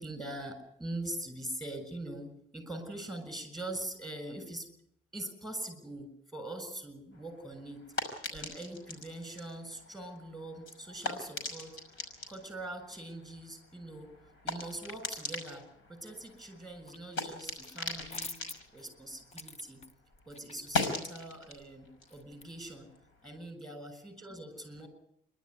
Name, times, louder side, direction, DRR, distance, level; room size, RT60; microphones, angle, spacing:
voice 1, 0.0-4.7 5.1-7.9 8.3-14.1 14.4-18.4 18.7-19.8 20.3-22.9 23.2-24.9, right 1 dB, ahead, 8 dB, 7.1 m, -43 dB
sound 1, 7.1-19.9 20.2-23.4, left 3 dB, 80° left, 5.5 m, -41 dB
sound 2, 16.4-17.0 17.3-22.8, left 3 dB, 35° left, 1.2 m, -49 dB
27.0 x 12.5 x 9.7 m, 0.73 s
cardioid pair, 90°, 20 cm